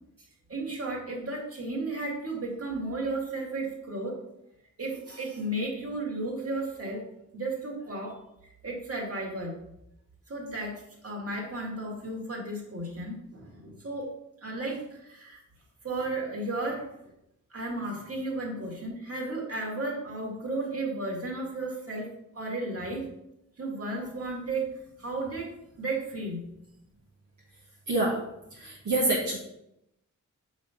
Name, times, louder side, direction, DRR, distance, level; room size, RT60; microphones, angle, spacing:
voice 1, 0.5-4.2 4.8-8.2 8.6-9.5 10.3-10.8 11.0-14.1 14.4-15.4 15.8-16.9 17.5-23.1 23.6-24.7 25.0-25.5 25.8-26.5, right 2 dB, 50° right, -2 dB, 1.9 m, -34 dB
voice 2, 27.9-28.2 28.5-29.4, right 2 dB, 65° right, -5 dB, 1.2 m, -26 dB
6.9 x 3.2 x 5.6 m, 0.84 s
wide cardioid pair, 105°, 32 cm